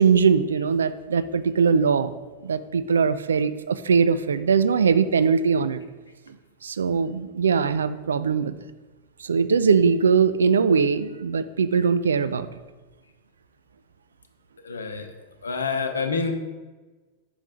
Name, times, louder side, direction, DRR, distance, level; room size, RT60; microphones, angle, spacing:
voice 1, 0.0-2.1 2.4-5.8 6.3-6.4 6.6-8.5 9.2-12.5, right 5 dB, 70° right, 13 dB, 0.3 m, -21 dB
voice 2, 14.6-15.0 15.4-16.3, left 4 dB, 75° left, 6 dB, 0.7 m, -27 dB
5.3 x 5.1 x 5.0 m, 1.3 s
figure-of-eight pair, 90°, 0 cm